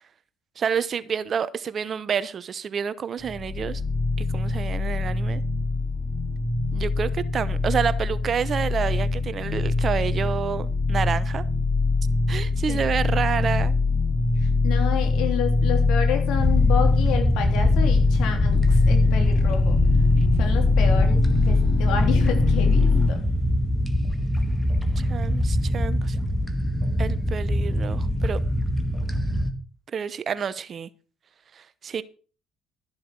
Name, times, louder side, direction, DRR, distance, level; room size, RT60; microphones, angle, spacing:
voice 1, 0.6-3.8 4.2-5.4 6.7-11.4 12.3-13.8 25.0-26.2 27.0-28.4 29.9-30.9 31.6-32.0, right 7 dB, 50° right, 1.0 m, -29 dB
sound 1, 3.2-23.1, left 3 dB, 20° left, 5.1 m, -22 dB
voice 2, 14.4-19.8 20.4-23.2, left 8 dB, 70° left, 3.4 m, -30 dB
sound 2, 16.3-29.5, equal, ahead, 2.1 m, -25 dB
13.5 x 7.7 x 6.2 m
hypercardioid pair, 65°, 0 cm